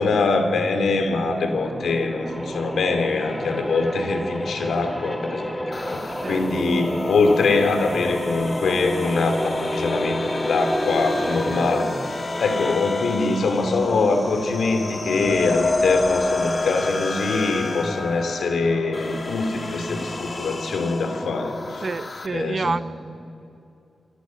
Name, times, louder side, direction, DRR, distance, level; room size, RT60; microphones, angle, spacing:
voice 1, 0.0-5.6 5.9-11.9 12.4-21.8 22.3-22.8, left 3 dB, 90° left, 6 dB, 2.9 m, -23 dB
sound 1, 1.1-12.8 13.4-20.6, equal, 5° left, 3.5 m, -32 dB
sound 2, 5.7-22.3, left 3 dB, 40° left, 1.6 m, -30 dB
voice 2, 21.8-22.8, right 4 dB, 45° right, 16 dB, 0.5 m, -27 dB
27.5 x 24.5 x 6.5 m, 2.7 s
wide cardioid pair, 105°, 0 cm